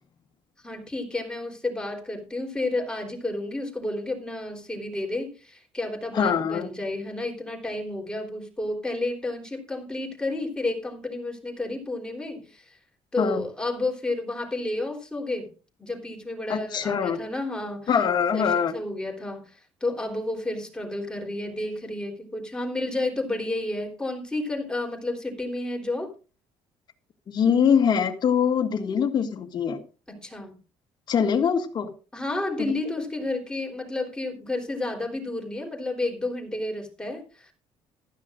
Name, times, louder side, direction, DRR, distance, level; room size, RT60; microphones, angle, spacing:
voice 1, 0.6-12.7 13.1-15.5 15.8-17.9 18.3-19.5 19.8-26.1 30.1-30.6 32.1-37.5, left 2 dB, 10° left, 3.8 m, -31 dB
voice 2, 6.1-6.7 13.2-13.4 16.5-17.2 17.9-18.7 27.3-29.8 31.1-31.9 32.6-32.7, left 7 dB, 45° left, 2.1 m, -23 dB
15.5 x 13.0 x 2.6 m
cardioid pair, 125°, 11 cm